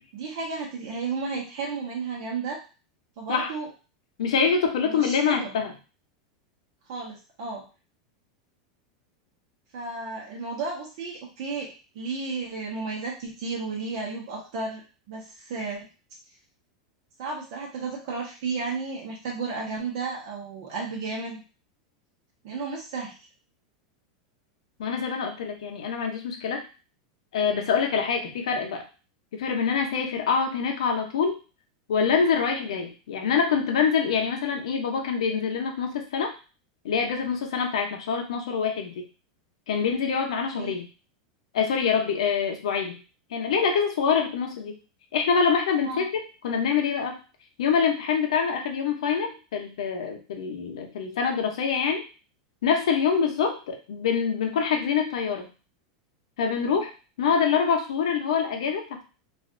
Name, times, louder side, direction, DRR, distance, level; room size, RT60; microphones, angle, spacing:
voice 1, 0.1-2.6 3.2-3.7 4.8-5.5 6.9-7.6 9.7-11.7 11.9-15.8 17.2-21.4 22.4-23.1 40.5-40.7 45.8-46.1, right 4 dB, 60° right, -3 dB, 1.1 m, -33 dB
voice 2, 4.2-5.7 24.8-26.6 27.3-28.8 29.3-31.4 31.9-36.3 36.8-38.9 39.7-40.9 41.5-43.0 43.3-44.8 45.1-47.2 47.6-52.0 52.6-55.5 56.4-56.9 57.2-59.0, left 6 dB, 85° left, 3 dB, 0.7 m, -25 dB
3.2 x 2.6 x 2.5 m, 0.33 s
supercardioid pair, 135°, 3 cm